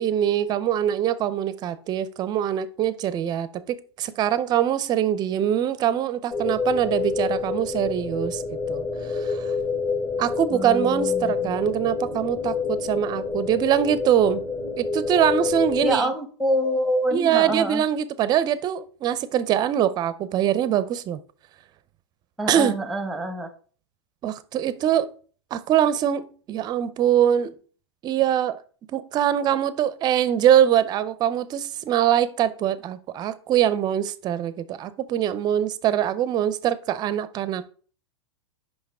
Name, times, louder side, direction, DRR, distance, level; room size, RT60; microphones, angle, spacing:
voice 1, 0.0-8.4 8.7-9.5 10.2-14.4 14.8-16.1 17.1-21.2 22.5-22.7 24.2-25.1 25.5-27.5 28.0-28.6 28.9-37.7, right 10 dB, 30° right, 0.5 m, -23 dB
sound 1, 6.3-16.0, left 5 dB, 30° left, 1.7 m, -28 dB
voice 2, 10.5-11.5 15.8-17.8 22.4-23.5, equal, ahead, 0.9 m, -26 dB
5.7 x 5.2 x 3.6 m
hypercardioid pair, 120°, 15 cm